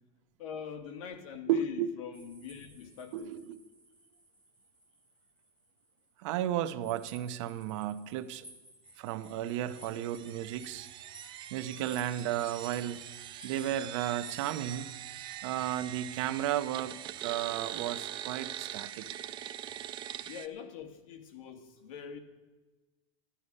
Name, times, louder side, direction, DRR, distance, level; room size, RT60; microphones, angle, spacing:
voice 1, 0.4-3.4 20.3-22.2, left 8 dB, 75° left, 1.8 m, -43 dB
voice 2, 1.5-1.9 3.1-3.6 6.2-8.5 9.0-10.9 11.5-13.0 13.4-14.9 15.4-17.0 17.2-19.1, right 11 dB, 65° right, 0.8 m, -33 dB
sound 1, 2.1-5.8 6.8-14.6, right 1 dB, 10° left, 2.6 m, -55 dB
sound 2, 9.3-20.5, right 11 dB, 30° right, 0.5 m, -43 dB
14.0 x 11.5 x 5.4 m
supercardioid pair, 155°, 17 cm